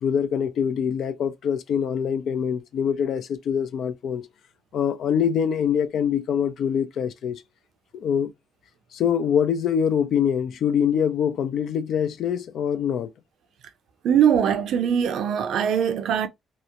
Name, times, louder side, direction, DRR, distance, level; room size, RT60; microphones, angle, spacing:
voice 1, 0.0-4.3 4.7-7.4 7.9-8.3 8.9-13.1, left 8 dB, 70° left, 0.4 m, -24 dB
voice 2, 14.0-16.3, right 8 dB, 75° right, 0.6 m, -21 dB
2.9 x 2.0 x 2.4 m
cardioid pair, 90°, 0 cm